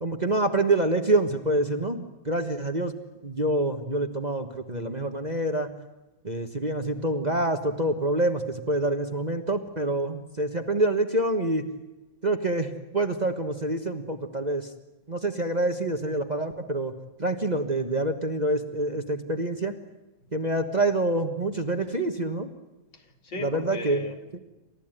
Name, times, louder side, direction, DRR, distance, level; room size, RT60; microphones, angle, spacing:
voice 1, 0.0-2.9 3.2-5.7 6.2-11.6 12.2-14.7 15.1-16.9 17.2-19.8 20.3-22.5 23.4-24.0 24.3-24.4, right 2 dB, 25° right, 6 dB, 1.4 m, -26 dB
voice 2, 20.8-21.2 22.9-24.4, left 2 dB, 70° left, 5 dB, 3.2 m, -39 dB
29.0 x 14.5 x 9.2 m, 1.1 s
omnidirectional pair, 2.0 m